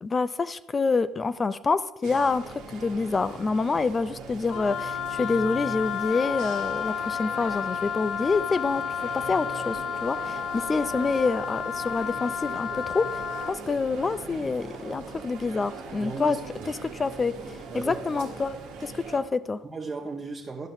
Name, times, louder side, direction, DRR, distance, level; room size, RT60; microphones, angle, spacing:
voice 1, 0.0-8.8 9.3-16.4 16.8-17.3 17.7-19.6, left 4 dB, 30° left, 14 dB, 0.3 m, -27 dB
sound 1, 2.0-19.2, right 4 dB, 80° right, 1.3 m, -41 dB
Wind instrument woodwind instrument, 4.5-13.6, left 8 dB, 65° left, 0.7 m, -32 dB
voice 2, 16.0-16.7 17.7-18.0 19.6-20.7, right 3 dB, 25° right, -1 dB, 0.9 m, -36 dB
12.0 x 5.5 x 2.7 m, 0.92 s
hypercardioid pair, 70°, 0 cm